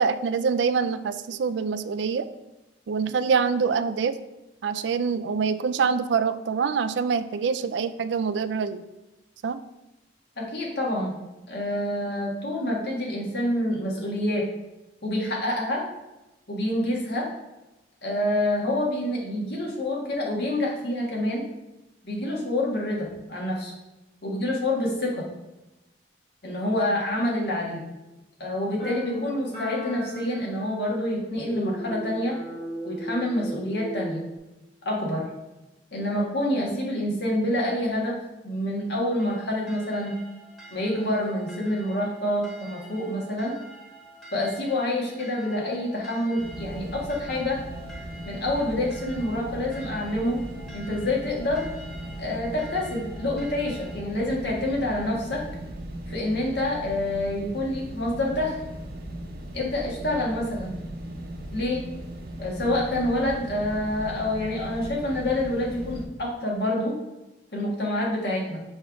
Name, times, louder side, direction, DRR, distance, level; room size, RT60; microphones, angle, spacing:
voice 1, 0.0-2.3 2.9-4.2 4.6-8.8 9.4-9.6, right 5 dB, 75° right, 12 dB, 0.3 m, -25 dB
voice 2, 10.4-11.2 11.5-14.4 15.0-15.8 16.5-17.3 18.0-21.4 22.0-23.7 24.2-25.2 26.4-27.8 28.4-32.4 32.8-34.2 34.9-35.3 35.9-38.2 38.4-40.2 40.7-43.5 44.3-47.6 48.2-50.4 50.7-51.6 52.2-55.4 56.1-58.5 59.5-60.7 61.5-61.8 62.4-67.0 67.5-68.6, left 1 dB, 60° left, -3 dB, 1.7 m, -27 dB
sound 1, 28.8-34.4, equal, 35° left, 2.1 m, -36 dB
sound 2, 39.2-54.0, right 1 dB, ahead, 1.2 m, -47 dB
sound 3, 46.4-66.0, right 1 dB, 55° right, 0.8 m, -38 dB
6.2 x 3.1 x 5.0 m, 0.99 s
head